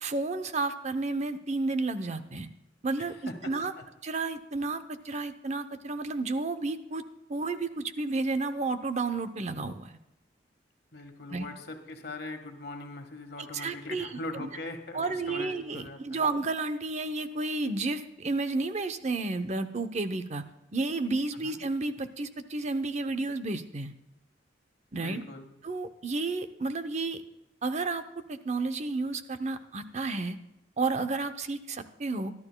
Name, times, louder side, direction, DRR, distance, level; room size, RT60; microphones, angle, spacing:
voice 1, 0.0-2.5 2.8-3.7 4.0-7.0 7.3-10.0 11.3-11.5 13.4-14.5 14.9-20.4 20.7-23.9 24.9-25.2 25.6-27.2 27.6-28.0 28.3-30.4 30.8-32.3, right 3 dB, 40° right, 10 dB, 0.7 m, -31 dB
voice 2, 3.0-3.9 10.9-16.2 21.4-21.6 25.0-25.5, left 2 dB, 60° left, 5 dB, 1.6 m, -41 dB
23.5 x 12.0 x 2.3 m, 0.93 s
head